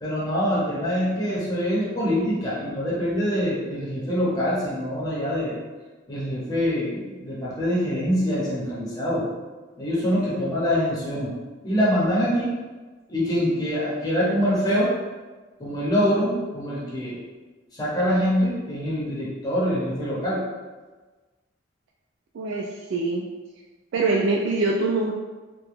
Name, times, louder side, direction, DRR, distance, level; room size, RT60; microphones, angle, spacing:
voice 1, 0.0-5.5 6.1-9.3 9.8-11.3 11.6-12.5 13.1-14.9 15.6-17.2 17.8-20.4, equal, 20° left, -8 dB, 0.8 m, -24 dB
voice 2, 22.3-23.2 23.9-25.1, right 3 dB, 70° right, -1 dB, 0.3 m, -24 dB
2.9 x 2.2 x 3.3 m, 1.3 s
head